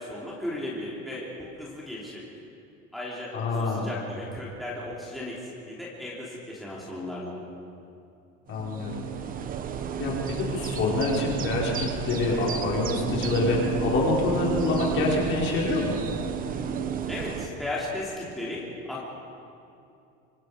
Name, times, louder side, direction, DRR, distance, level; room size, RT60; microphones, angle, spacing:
voice 1, 0.0-2.2 2.9-3.3 3.6-7.4 17.1-19.0, left 1 dB, ahead, -7 dB, 3.0 m, -36 dB
voice 2, 3.3-3.9 8.5-9.0 10.0-15.9, left 2 dB, 40° left, -3 dB, 5.1 m, -26 dB
sound 1, 8.5-17.5, right 7 dB, 30° right, 1.0 m, -32 dB
26.0 x 24.5 x 5.1 m, 2.6 s
cardioid pair, 165°, 30 cm